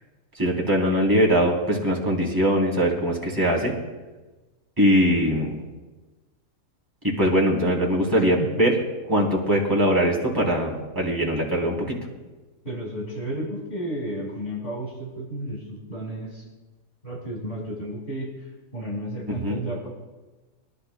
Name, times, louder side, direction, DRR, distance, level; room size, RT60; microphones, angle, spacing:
voice 1, 0.3-3.7 4.8-5.6 7.0-8.7 9.1-11.9 19.4-19.6, equal, 15° right, -3 dB, 3.1 m, -21 dB
voice 2, 12.6-16.5 17.0-19.9, right 1 dB, 40° left, -3 dB, 4.8 m, -32 dB
24.0 x 12.0 x 2.2 m, 1.2 s
omnidirectional pair, 1.5 m